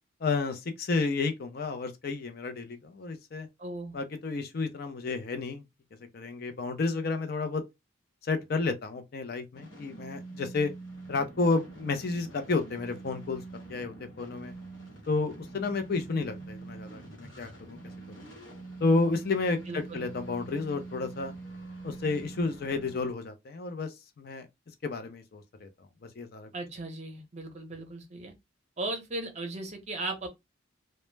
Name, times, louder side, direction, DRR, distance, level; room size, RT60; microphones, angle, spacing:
voice 1, 0.2-3.5 3.9-5.6 6.1-7.6 8.2-10.7 11.1-13.4 13.7-14.5 15.1-17.8 18.8-21.3 21.8-24.5 24.8-25.7 26.2-26.5, left 3 dB, 50° left, 0.4 m, -31 dB
voice 2, 3.6-4.0 19.7-20.0 26.5-28.3 28.8-30.3, right 2 dB, 35° right, 0.6 m, -37 dB
sound 1, 9.5-23.1, right 3 dB, 70° left, 1.0 m, -45 dB
2.1 x 2.0 x 3.1 m
head